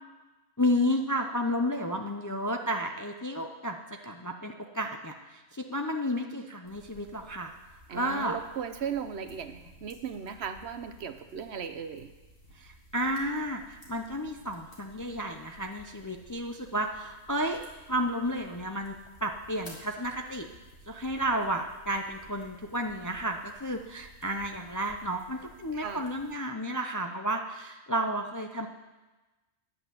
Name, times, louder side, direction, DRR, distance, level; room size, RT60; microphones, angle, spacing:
voice 1, 0.6-3.8 4.0-7.6 7.9-8.4 12.5-17.6 17.9-20.5 20.9-28.7, equal, 25° left, 3 dB, 0.4 m, -32 dB
sound 1, 6.6-26.4, equal, 50° left, 2.6 m, -55 dB
voice 2, 7.9-12.1 25.7-26.0, right 7 dB, 65° right, 9 dB, 1.0 m, -37 dB
10.0 x 8.2 x 7.5 m, 1.1 s
omnidirectional pair, 1.3 m